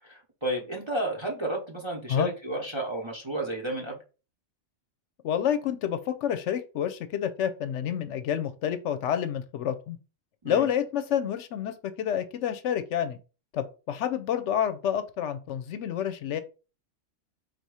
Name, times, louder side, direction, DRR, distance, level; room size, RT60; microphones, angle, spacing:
voice 1, 0.0-4.0 10.4-10.7, right 1 dB, 25° right, 0 dB, 0.7 m, -32 dB
voice 2, 5.2-10.0 10.4-13.2 13.5-16.4, left 9 dB, 75° left, 11 dB, 0.9 m, -29 dB
3.9 x 2.8 x 4.7 m, 0.33 s
omnidirectional pair, 1.3 m